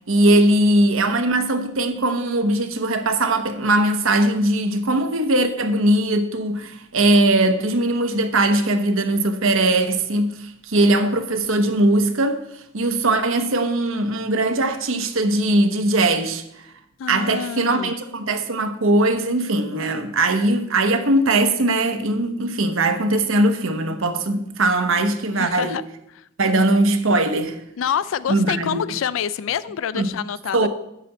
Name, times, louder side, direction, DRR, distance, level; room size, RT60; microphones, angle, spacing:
voice 1, 0.1-12.4 12.7-16.4 17.1-25.8 26.4-27.6 28.3-28.8 29.9-30.1 30.5-30.7, right 1 dB, 80° right, 1.0 m, -20 dB
voice 2, 17.0-17.9 25.4-25.8 26.1-26.3 27.8-30.7, left 8 dB, 75° left, 0.3 m, -27 dB
11.0 x 4.2 x 7.9 m
head